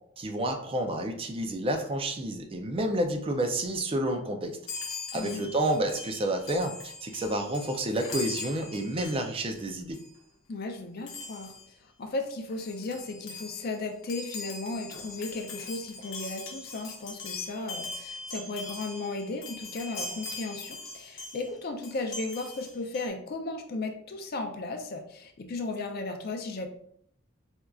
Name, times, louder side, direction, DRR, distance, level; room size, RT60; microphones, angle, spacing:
voice 1, 0.2-4.6 5.1-10.0, right 1 dB, 30° right, 5 dB, 0.4 m, -30 dB
Chime, 4.7-9.6 9.9-10.2 11.1-11.7 12.2-12.3 12.5-21.5 21.8-23.1, left 3 dB, 75° left, 0.8 m, -41 dB
voice 2, 5.1-5.5 10.5-11.5 11.8-26.7, left 3 dB, 50° left, 5 dB, 0.4 m, -35 dB
4.3 x 2.4 x 2.3 m, 0.69 s
head